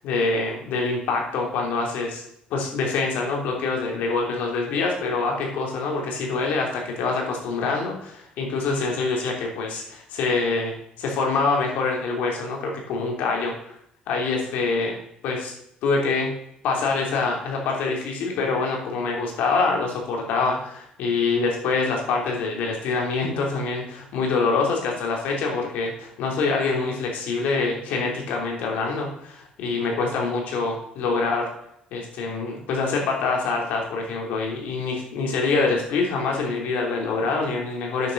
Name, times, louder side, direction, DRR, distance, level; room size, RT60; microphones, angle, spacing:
voice 1, 0.0-2.2 2.5-13.8 14.1-14.9 15.2-15.5 15.8-16.3 16.6-31.5 31.9-38.1, left 4 dB, 80° left, 0 dB, 3.0 m, -25 dB
9.2 x 6.8 x 6.5 m, 0.74 s
cardioid pair, 135°, 3 cm